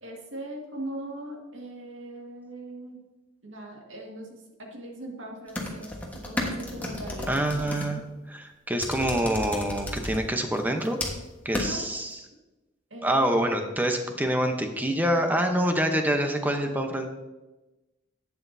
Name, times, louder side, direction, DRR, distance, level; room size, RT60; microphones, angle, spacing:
voice 1, 0.0-3.0 3.4-8.0 11.6-11.8 12.9-13.5, right 1 dB, 70° right, 0 dB, 1.9 m, -40 dB
sound 1, 5.5-7.9 8.8-10.2 10.5-11.3 11.5-11.7, left 1 dB, 10° left, 1.2 m, -33 dB
voice 2, 7.3-8.0 8.3-11.0 11.4-12.2 13.0-17.1, right 1 dB, 10° right, 4 dB, 0.8 m, -26 dB
11.5 x 8.2 x 2.7 m, 1.1 s
head